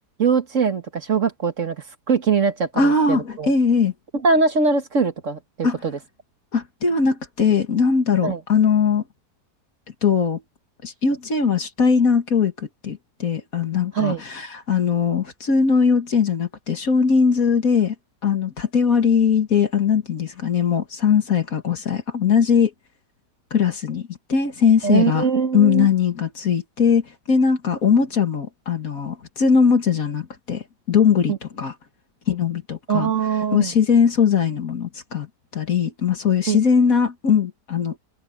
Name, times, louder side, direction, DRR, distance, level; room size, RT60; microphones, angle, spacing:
voice 1, 0.2-3.5 4.2-6.0 8.2-8.4 13.9-14.2 24.8-25.9 31.3-31.4 32.9-33.7 36.5-36.6, right 5 dB, 50° right, 1.9 m, -22 dB
voice 2, 2.8-3.9 5.6-5.8 6.5-9.0 10.0-10.4 10.8-17.9 18.2-22.7 23.5-25.2 25.5-31.7 32.3-33.1 33.5-35.3 35.5-37.9, left 6 dB, 55° left, 2.3 m, -20 dB
omnidirectional pair, 1.7 m